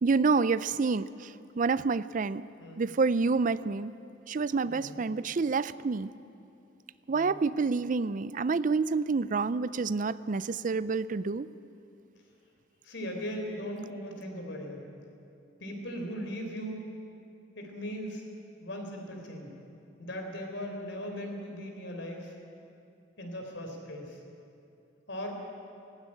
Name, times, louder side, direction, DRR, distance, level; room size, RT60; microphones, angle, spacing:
voice 1, 0.0-2.5 2.8-3.9 4.3-6.1 7.1-11.5, right 4 dB, 45° right, 16 dB, 0.4 m, -28 dB
voice 2, 2.6-2.9 4.6-5.0 7.1-7.4 12.8-14.9 15.6-16.9 17.6-18.3 18.6-19.5 20.0-22.3 23.2-24.2 25.1-25.4, equal, 75° left, 2 dB, 4.0 m, -38 dB
18.5 x 15.5 x 9.9 m, 2.6 s
head